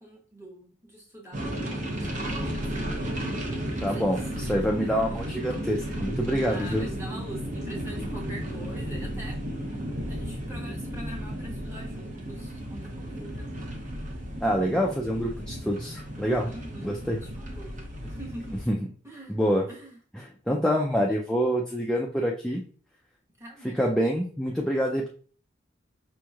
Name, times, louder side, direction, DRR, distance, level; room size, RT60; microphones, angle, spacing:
voice 1, 0.0-2.8 3.7-4.1 4.8-5.2 6.5-13.5 16.4-18.6 19.0-19.4 19.7-20.0 23.4-23.9, right 1 dB, 15° right, -3 dB, 1.1 m, -44 dB
sound 1, 1.3-18.6, equal, 40° right, 0.8 m, -34 dB
voice 2, 3.8-6.9 14.4-16.5 16.8-17.2 18.7-18.8 19.3-19.6 20.5-22.6 23.7-25.1, equal, 5° left, -1 dB, 0.3 m, -26 dB
5.1 x 3.0 x 2.3 m, 0.43 s
head